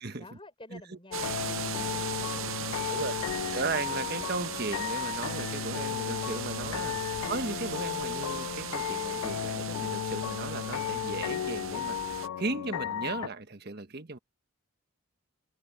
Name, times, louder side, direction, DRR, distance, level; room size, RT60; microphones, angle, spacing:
voice 1, 0.2-3.4, left 2 dB, 25° left, 6.4 m, -52 dB
sound 1, 1.1-13.3, left 9 dB, 80° left, 0.3 m, -34 dB
sound 2, 1.1-12.3, right 9 dB, 65° right, 0.7 m, -38 dB
voice 2, 3.5-14.2, right 3 dB, 45° right, 1.4 m, -36 dB
sound 3, 4.8-8.9, right 5 dB, 85° right, 1.5 m, -52 dB
head